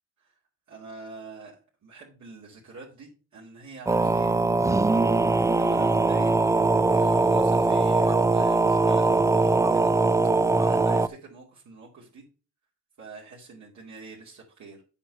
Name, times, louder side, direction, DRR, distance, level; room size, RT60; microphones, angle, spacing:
voice 1, 0.7-4.4 5.4-9.9 10.3-12.3 13.0-14.8, right 3 dB, 65° right, -4 dB, 2.5 m, -46 dB
sound 1, 3.9-11.1, right 3 dB, 10° right, 0.3 m, -21 dB
8.3 x 4.8 x 5.7 m, 0.37 s
cardioid pair, 90°, 31 cm